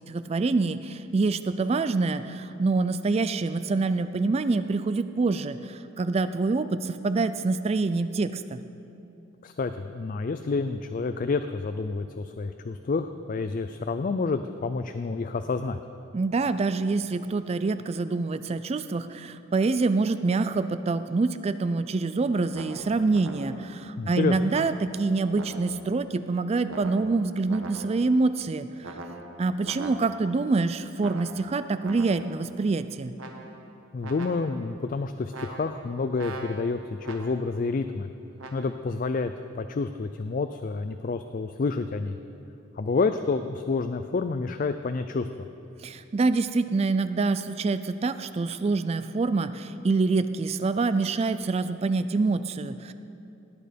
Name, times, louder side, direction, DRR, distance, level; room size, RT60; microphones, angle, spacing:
voice 1, 0.1-8.6 16.1-28.9 29.4-33.1 45.8-52.9, right 3 dB, 30° right, 12 dB, 0.3 m, -26 dB
voice 2, 9.4-15.8 24.0-24.5 33.9-38.1 38.5-42.2 42.8-45.5, left 4 dB, 45° left, 9 dB, 0.4 m, -29 dB
sound 1, 22.5-23.8 24.5-26.0 26.7-28.2 28.8-30.4 31.0-32.4 33.2-33.8 34.0-34.7 35.3-37.6 38.4-38.7, right 2 dB, 85° right, 1.3 m, -42 dB
18.0 x 8.9 x 5.1 m, 2.7 s
head